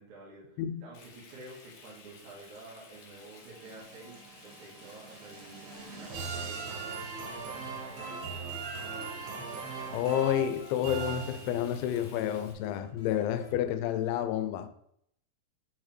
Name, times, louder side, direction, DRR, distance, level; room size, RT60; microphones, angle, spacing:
voice 1, 0.0-7.1, right 2 dB, 50° right, 2.9 m, -50 dB
Frying (food), 0.9-12.5, left 4 dB, 65° left, 2.1 m, -55 dB
sound 1, 2.9-11.9, right 5 dB, 80° right, 4.1 m, -40 dB
sound 2, 5.7-13.7, left 3 dB, 30° left, 2.4 m, -50 dB
voice 2, 9.9-14.7, left 10 dB, 85° left, 2.9 m, -30 dB
7.6 x 4.8 x 4.4 m
omnidirectional pair, 5.2 m